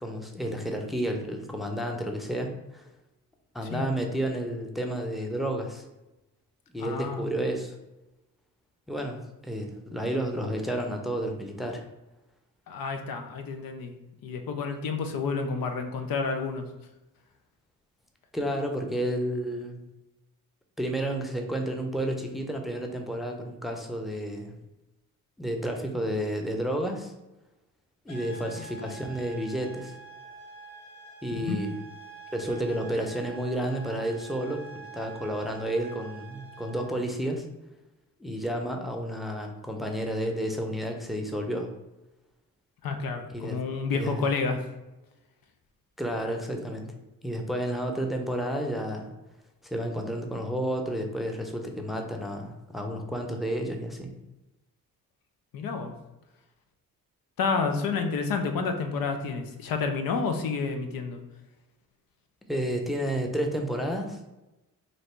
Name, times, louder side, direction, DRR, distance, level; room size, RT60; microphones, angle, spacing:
voice 1, 0.0-2.8 3.5-5.8 6.7-7.8 8.9-11.8 18.3-19.8 20.8-24.6 25.4-27.1 28.1-29.9 31.2-31.7 32.3-37.5 38.2-41.7 43.3-43.6 43.9-44.2 46.0-46.9 47.2-49.1 49.6-54.1 62.5-64.2, right 1 dB, ahead, 3 dB, 0.6 m, -31 dB
voice 2, 6.8-7.3 12.7-13.9 14.2-16.7 31.5-31.6 42.8-44.6 55.5-55.9 57.4-61.2, left 4 dB, 75° left, 6 dB, 0.6 m, -30 dB
sound 1, 28.1-37.0, right 4 dB, 40° left, 1.4 m, -46 dB
3.1 x 2.7 x 4.3 m, 1.0 s
cardioid pair, 65°, 35 cm